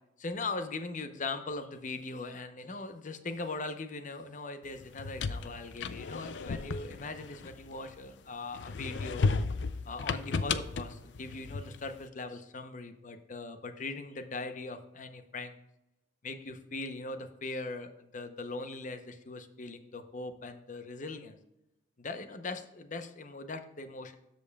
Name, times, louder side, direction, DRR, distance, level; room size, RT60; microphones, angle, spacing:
voice 1, 0.2-9.3 9.9-15.6 16.2-21.4 22.0-24.2, left 3 dB, 45° left, 8 dB, 0.7 m, -40 dB
sound 1, 4.8-8.1 8.5-11.9, left 4 dB, 85° left, 0.5 m, -34 dB
13.5 x 5.3 x 2.3 m, 0.88 s
head